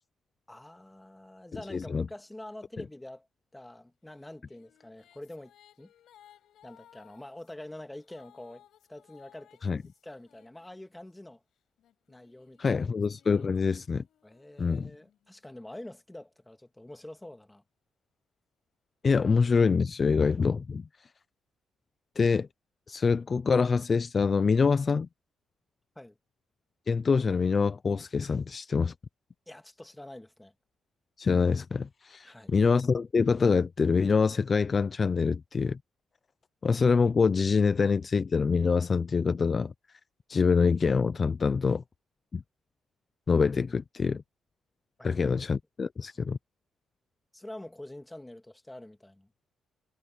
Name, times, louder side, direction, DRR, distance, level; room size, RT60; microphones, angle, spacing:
voice 1, 0.5-3.3 3.5-5.5 5.8-5.9 6.6-11.4 12.1-12.8 14.2-17.6 26.0-26.2 29.5-30.5 32.2-32.6 45.0-45.3 47.3-49.3, left 1 dB, 10° left, 2.4 m, -46 dB
voice 2, 1.7-2.1 9.6-9.8 12.6-14.0 14.6-14.9 19.0-20.8 22.2-22.5 22.9-25.1 26.9-28.9 31.2-35.8 36.6-39.7 40.3-41.8 42.3-42.4 43.3-44.2 45.0-46.4, left 5 dB, 35° left, 0.6 m, -25 dB
sound 1, 4.2-11.2 11.8-15.5, left 11 dB, 75° left, 7.5 m, -62 dB
cardioid pair, 90°, 0 cm